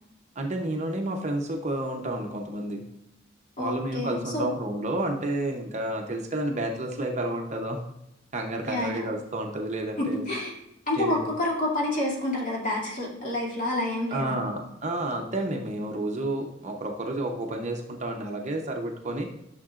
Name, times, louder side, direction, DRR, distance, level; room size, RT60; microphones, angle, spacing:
voice 1, 0.4-2.8 3.6-7.8 8.3-10.2 11.0-11.3 14.1-19.3, right 1 dB, 35° right, 2 dB, 0.8 m, -30 dB
voice 2, 3.6-4.5 8.7-9.1 10.0-10.5 10.9-14.4, left 1 dB, 40° left, -4 dB, 2.5 m, -28 dB
11.5 x 6.5 x 2.5 m, 0.82 s
head